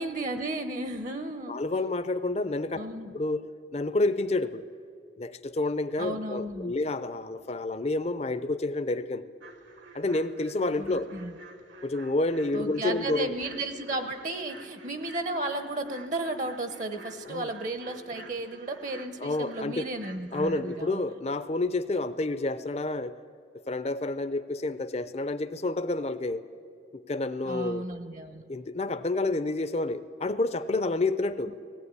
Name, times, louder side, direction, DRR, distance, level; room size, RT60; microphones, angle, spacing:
voice 1, 0.0-1.6 2.8-3.1 6.0-6.7 10.8-11.3 12.5-21.0 27.4-28.4, right 2 dB, 40° right, 9 dB, 0.9 m, -34 dB
voice 2, 1.5-2.8 3.1-3.4 3.7-4.6 5.2-9.2 9.9-11.1 11.8-13.3 17.3-17.5 19.2-19.9 20.3-23.2 23.7-26.4 26.9-27.9 28.5-31.5, left 2 dB, 35° left, 11 dB, 0.6 m, -29 dB
sound 1, 9.4-20.8, right 3 dB, 70° right, 1.7 m, -50 dB
18.0 x 15.5 x 9.7 m, 2.3 s
head